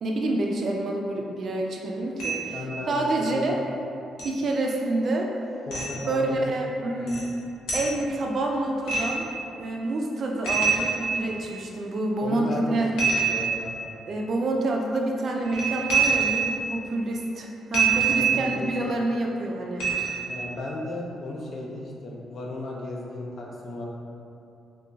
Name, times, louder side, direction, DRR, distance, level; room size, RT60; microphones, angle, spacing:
voice 1, 0.0-2.5 2.9-3.5 4.2-5.3 6.1-7.4 7.7-9.3 9.6-12.9 14.1-19.9, right 2 dB, 45° right, 0 dB, 0.3 m, -27 dB
sound 1, 2.2-2.6 4.2-4.3 5.7-5.9 7.1-7.2 7.7-7.9 8.9-9.3 10.4-11.5 13.0-13.8 15.4-16.7 17.7-18.6 19.8-20.3, right 6 dB, 90° left, 0.8 m, -25 dB
voice 2, 2.5-3.4 5.7-6.4 7.0-7.1 12.2-13.8 18.1-18.7 20.3-23.9, left 2 dB, 50° left, -2 dB, 0.5 m, -35 dB
2.4 x 2.2 x 3.8 m, 2.7 s
cardioid pair, 130°, 0 cm